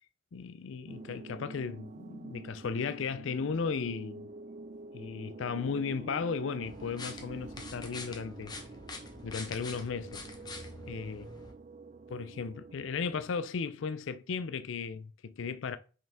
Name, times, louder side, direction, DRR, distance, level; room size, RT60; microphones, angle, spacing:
voice 1, 0.3-4.3 4.9-8.5 9.2-10.3 10.9-11.3 12.1-15.8, left 5 dB, 85° left, 0.4 m, -35 dB
sound 1, 0.9-13.3, right 3 dB, 40° right, 0.4 m, -47 dB
sound 2, 6.6-11.5, left 3 dB, 20° left, 0.9 m, -45 dB
5.5 x 5.3 x 3.5 m
head